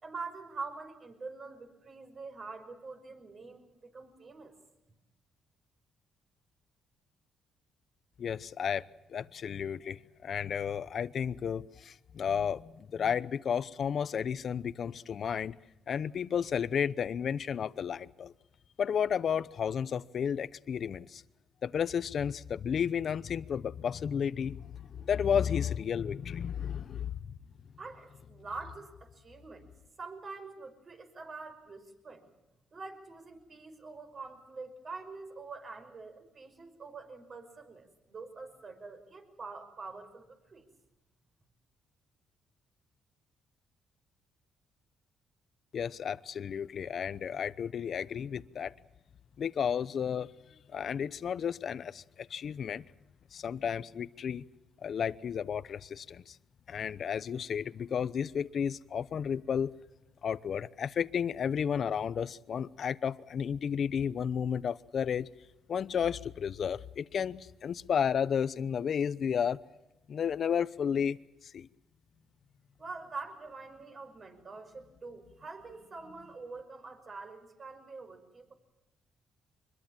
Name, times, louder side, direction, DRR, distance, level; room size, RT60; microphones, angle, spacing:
voice 1, 0.0-4.5 27.8-29.7 30.0-32.3 32.7-40.7 72.8-78.5, right 4 dB, 40° right, 5.7 m, -45 dB
voice 2, 8.2-15.6 15.9-18.3 18.8-21.2 21.6-27.1 45.7-48.7 49.4-52.8 53.3-54.4 54.8-56.4 56.7-59.7 60.2-65.3 65.7-69.6 70.1-71.2 71.4-71.7, left 7 dB, 55° left, 0.8 m, -32 dB
24.5 x 22.0 x 7.4 m
cardioid pair, 90°, 0 cm